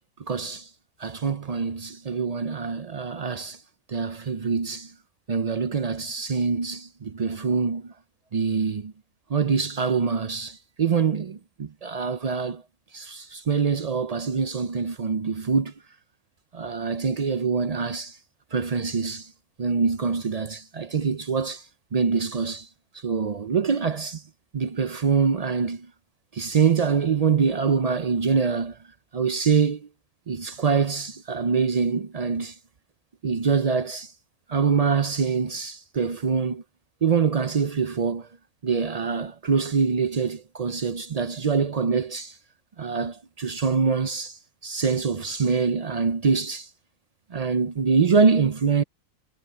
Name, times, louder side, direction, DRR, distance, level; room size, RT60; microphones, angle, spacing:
voice 1, 0.3-0.7 1.0-3.6 3.9-4.9 5.3-7.9 8.3-8.9 9.3-12.6 12.9-15.7 16.5-18.2 18.5-19.3 19.6-21.6 21.9-22.7 23.0-24.2 24.5-25.9 26.3-28.8 29.1-29.9 30.3-32.5 33.2-34.1 34.5-36.6 37.0-38.3 38.6-42.3 42.8-46.7 47.3-48.8, right 5 dB, 55° right, 0.4 m, -24 dB
omnidirectional pair, 1.4 m